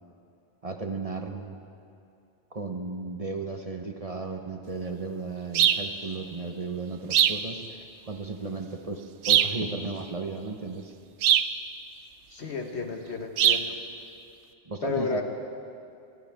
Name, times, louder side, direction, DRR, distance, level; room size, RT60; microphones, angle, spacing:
voice 1, 0.6-1.6 2.5-10.9 14.6-15.2, right 3 dB, 35° right, 4 dB, 0.9 m, -35 dB
sound 1, 5.5-5.9 7.1-7.5 9.2-9.6 11.2-11.5 13.4-13.7, right 10 dB, 90° right, 0.9 m, -21 dB
voice 2, 12.3-13.8 14.8-15.2, left 4 dB, 75° left, 4 dB, 1.5 m, -32 dB
25.5 x 13.0 x 3.5 m, 2.5 s
omnidirectional pair, 1.1 m